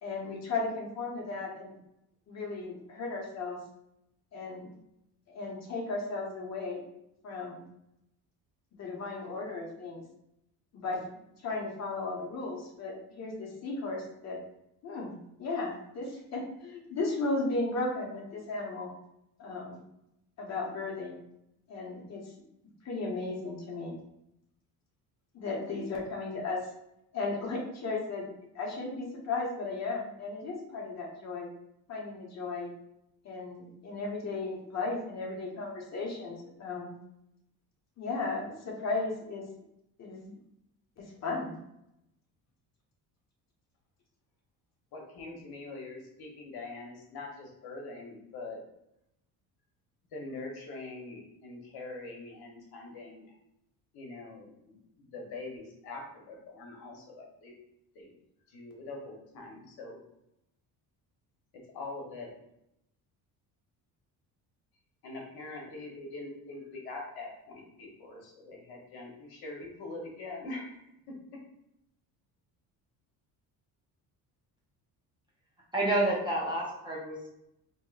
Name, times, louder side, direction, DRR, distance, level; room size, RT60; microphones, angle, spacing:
voice 1, 0.0-1.8 2.3-3.6 4.3-4.7 5.3-6.8 7.2-7.6 8.8-10.0 10.7-11.0 11.4-14.4 14.8-15.1 15.4-18.9 19.4-19.8 20.4-21.2 21.7-22.2 22.8-24.0 25.3-26.6 27.1-28.3 28.5-31.5 31.9-32.7 33.2-36.9 38.0-39.4 40.0-40.4 41.0-41.5, left 3 dB, 45° left, -2 dB, 1.1 m, -35 dB
voice 2, 44.9-48.6 50.1-53.3 53.9-57.5 57.9-58.1 58.5-60.0 61.7-62.3 65.0-70.8, left 2 dB, 75° left, 0 dB, 1.1 m, -43 dB
voice 3, 75.7-77.3, right 1 dB, 10° right, -5 dB, 0.8 m, -29 dB
4.4 x 2.9 x 2.4 m, 0.82 s
cardioid pair, 155°, 38 cm